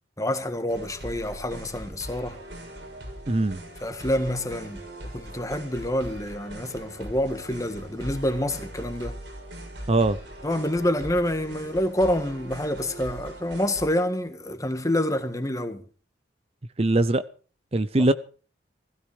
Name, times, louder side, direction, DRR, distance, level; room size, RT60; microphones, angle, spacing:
voice 1, 0.2-2.4 3.8-4.8 5.1-9.2 10.4-15.8, left 1 dB, 20° left, 1.7 m, -27 dB
sound 1, 0.7-13.8, right 1 dB, 80° right, 7.4 m, -40 dB
voice 2, 3.3-3.6 9.9-10.2 16.8-17.2 17.7-18.1, right 2 dB, 35° right, 0.7 m, -21 dB
16.5 x 16.0 x 5.0 m
head